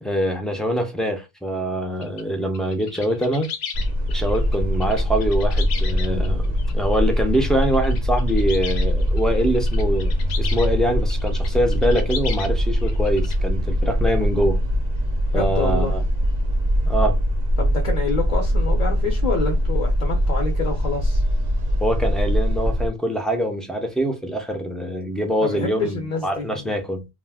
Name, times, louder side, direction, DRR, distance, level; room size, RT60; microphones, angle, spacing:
voice 1, 0.0-3.5 4.1-14.6 15.3-16.0 16.8-17.2 21.8-27.1, equal, ahead, 0.4 m, -24 dB
sound 1, 2.0-2.2 2.5-10.7 11.1-12.5 12.8-13.4, left 7 dB, 85° left, 0.8 m, -36 dB
sound 2, 3.7-22.9, equal, 50° right, 0.6 m, -22 dB
voice 2, 15.3-16.0 17.6-21.2 25.4-26.7, left 4 dB, 50° left, 0.7 m, -27 dB
2.4 x 2.2 x 3.4 m
omnidirectional pair, 1.0 m